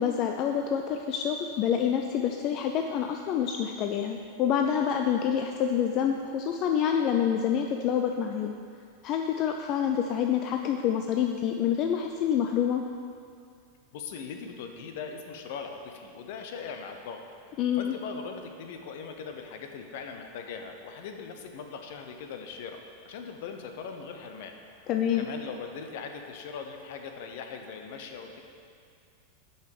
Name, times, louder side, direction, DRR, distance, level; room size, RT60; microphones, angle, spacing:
voice 1, 0.0-8.5 9.0-12.8 17.6-17.9 24.9-25.3, left 8 dB, 45° left, 3 dB, 0.5 m, -27 dB
voice 2, 13.9-17.2 17.5-22.8 23.0-28.4, left 5 dB, 65° left, 5 dB, 0.9 m, -40 dB
6.5 x 5.6 x 6.8 m, 2.3 s
hypercardioid pair, 120°, 0 cm